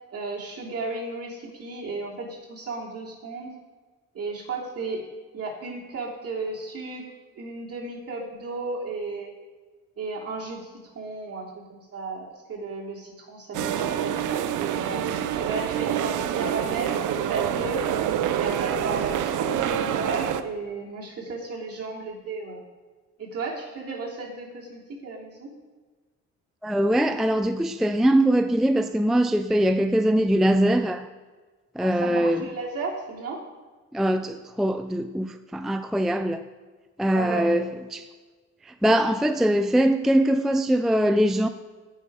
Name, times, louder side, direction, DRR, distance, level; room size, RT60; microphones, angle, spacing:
voice 1, 0.1-3.5 4.1-5.0 5.3-7.0 7.3-9.3 10.0-14.2 14.6-17.9 18.3-22.6 23.2-25.5 31.8-33.4 37.1-37.5, right 3 dB, 50° right, 3.1 m, -34 dB
sound 1, 13.5-20.4, right 10 dB, 80° right, 0.7 m, -26 dB
voice 2, 26.6-31.1 31.7-32.5 33.9-36.5 37.0-38.1 38.6-41.5, right 1 dB, ahead, 0.4 m, -22 dB
14.5 x 5.6 x 4.9 m
cardioid pair, 90°, 30 cm